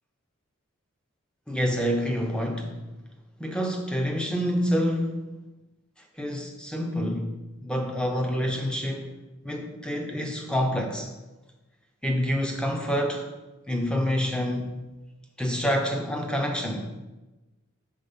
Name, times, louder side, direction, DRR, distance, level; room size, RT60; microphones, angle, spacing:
voice 1, 1.5-2.8 3.4-5.2 6.2-7.3 7.6-9.1 9.4-11.1 12.0-13.3 13.7-14.8 15.4-16.9, equal, 5° left, 3 dB, 0.6 m, -27 dB
5.5 x 4.2 x 5.3 m, 1.1 s
head